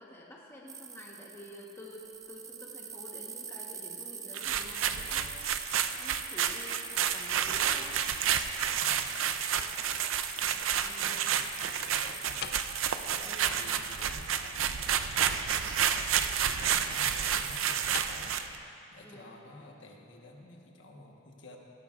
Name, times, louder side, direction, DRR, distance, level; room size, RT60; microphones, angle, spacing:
voice 1, 0.0-8.1 10.8-11.3 13.2-13.5 19.0-19.3, left 1 dB, 10° left, -3 dB, 1.0 m, -49 dB
sound 1, 0.7-15.7 16.0-17.9, right 6 dB, 15° right, 0.3 m, -44 dB
sound 2, 2.0-18.2, left 6 dB, 55° left, 0.5 m, -50 dB
sound 3, 4.3-18.6, right 8 dB, 85° right, 0.5 m, -30 dB
voice 2, 8.8-9.2 11.0-12.5 13.1-18.4 18.6-21.6, left 2 dB, 70° left, 0 dB, 1.2 m, -52 dB
17.5 x 14.0 x 2.4 m, 2.8 s
head